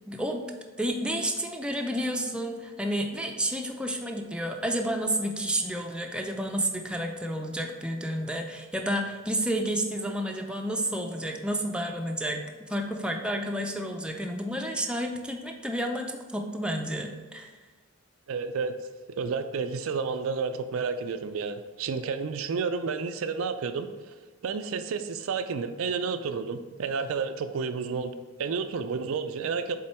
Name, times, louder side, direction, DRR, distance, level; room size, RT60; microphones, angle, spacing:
voice 1, 0.1-0.5 0.8-12.4 12.7-17.5, right 1 dB, 5° right, 2 dB, 0.5 m, -30 dB
voice 2, 18.3-18.7 19.1-24.1 24.4-28.1 28.4-29.8, right 5 dB, 70° right, 9 dB, 0.4 m, -31 dB
7.5 x 3.8 x 4.3 m, 1.3 s
head